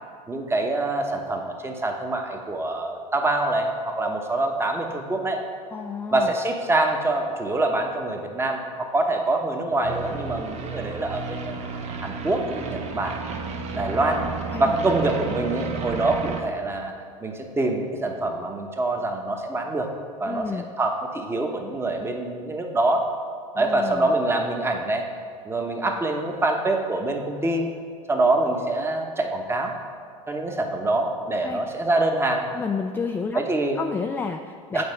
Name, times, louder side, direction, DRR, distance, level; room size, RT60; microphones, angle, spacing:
voice 1, 0.3-5.4 6.1-11.5 12.0-13.2 13.7-14.3 14.6-16.9 17.2-19.9 20.2-23.1 23.6-25.0 25.4-27.7 28.1-29.7 30.3-32.5 33.3-33.8 34.7-34.8, right 2 dB, 15° right, 3 dB, 0.9 m, -25 dB
voice 2, 5.7-6.3 14.5-14.8 20.3-20.7 23.5-24.1 31.4-31.6 32.5-33.4 33.8-34.8, left 5 dB, 10° left, 5 dB, 0.3 m, -30 dB
sound 1, 9.8-16.4, right 5 dB, 35° right, 0.9 m, -32 dB
8.0 x 4.2 x 5.4 m, 2.1 s
hypercardioid pair, 90°, 18 cm